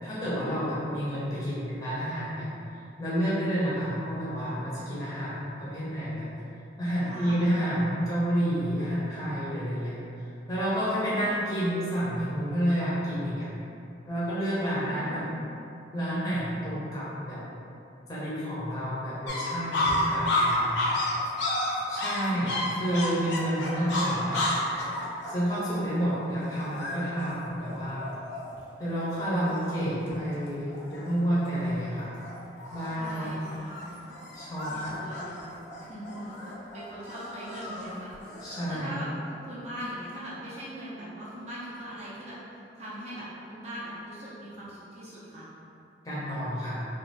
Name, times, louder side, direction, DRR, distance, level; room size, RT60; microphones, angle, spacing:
voice 1, 0.0-2.5 3.0-6.3 6.8-10.0 10.5-13.5 14.1-15.2 15.9-17.4 18.1-20.9 21.9-24.5 25.3-28.1 28.8-32.1 32.7-33.3 34.3-34.9 38.4-38.9 46.0-46.9, equal, 20° left, -10 dB, 0.6 m, -29 dB
voice 2, 7.0-7.6 11.1-11.3 14.8-15.4 22.3-23.3 23.6-24.2 32.9-34.0 34.7-38.1 38.4-39.1 39.4-42.4 42.8-45.5, equal, 35° right, -9 dB, 0.5 m, -41 dB
sound 1, 19.3-28.7 29.2-29.3 29.5-30.1 30.4-31.1 31.5-31.9 32.2-38.7, left 1 dB, 80° left, 0.5 m, -31 dB
2.6 x 2.3 x 3.2 m, 2.7 s
head